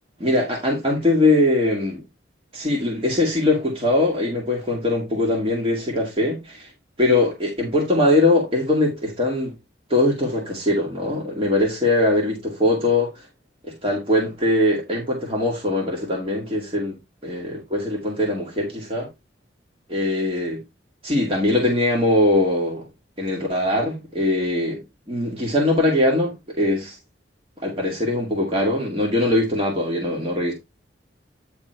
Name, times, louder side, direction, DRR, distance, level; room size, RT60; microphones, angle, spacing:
voice 1, 0.2-2.0 2.5-6.7 7.0-9.5 9.9-13.3 13.6-17.0 17.2-19.1 19.9-20.6 21.0-22.8 23.2-24.8 25.1-27.0 27.6-30.5, left 1 dB, 30° right, 2.1 m, -21 dB
9.7 x 3.7 x 4.6 m
head